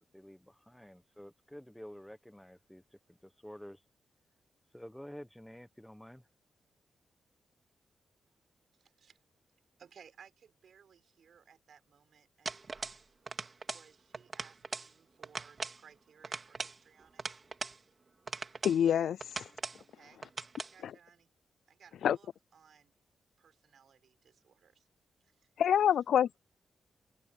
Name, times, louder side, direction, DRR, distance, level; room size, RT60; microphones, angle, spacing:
voice 1, 0.1-2.8 3.1-3.8 4.7-6.2, equal, 5° left, 1.3 m, -50 dB
voice 2, 8.7-9.2 9.8-12.5 13.7-17.3 19.8-20.2 20.6-21.3 21.7-22.9 23.4-24.9 25.2-25.9, right 7 dB, 65° right, 6.8 m, -61 dB
sound 1, 12.5-13.0 13.3-13.9 14.1-14.9 15.2-15.8 16.2-17.8 18.3-18.8 19.2-19.8 20.2-20.7, right 4 dB, 35° right, 2.2 m, -40 dB
voice 3, 18.6-19.2 22.0-22.2 25.6-26.4, left 9 dB, 80° left, 0.3 m, -26 dB
cardioid pair, 95°, 0 cm